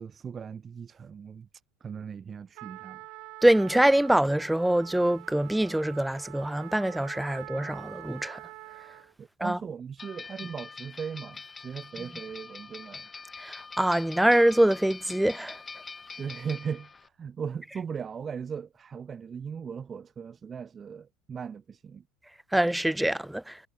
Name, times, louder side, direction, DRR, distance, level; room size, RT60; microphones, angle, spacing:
voice 1, 0.0-1.5 1.8-3.0 9.2-13.1 16.2-22.0, right 7 dB, 30° right, 3.2 m, -38 dB
Trumpet, 2.5-9.1, right 23 dB, 60° right, 2.5 m, -45 dB
voice 2, 3.4-8.4 9.4-9.6 13.4-15.6 22.5-23.6, right 1 dB, 5° right, 0.4 m, -24 dB
sound 1, 10.0-17.1, left 4 dB, 20° left, 5.7 m, -44 dB
hypercardioid pair, 85°, 0 cm